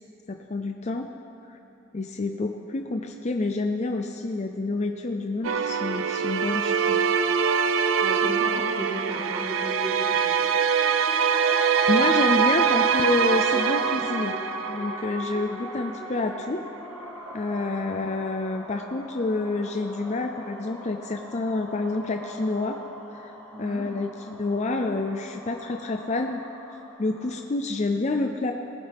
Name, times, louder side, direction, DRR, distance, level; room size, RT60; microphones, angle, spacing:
voice 1, 0.3-1.1 1.5-1.6 1.9-7.1 11.9-14.4 14.7-16.6 17.3-22.8 23.1-26.4 27.0-28.5, left 2 dB, 35° left, 4 dB, 0.5 m, -28 dB
sound 1, 5.4-15.2, right 7 dB, 80° right, 0.5 m, -23 dB
voice 2, 8.0-10.5 23.5-23.9, equal, 25° right, -2 dB, 1.6 m, -34 dB
sound 2, 10.1-27.4, equal, 10° left, 1.5 m, -39 dB
19.5 x 9.8 x 3.5 m, 2.8 s
head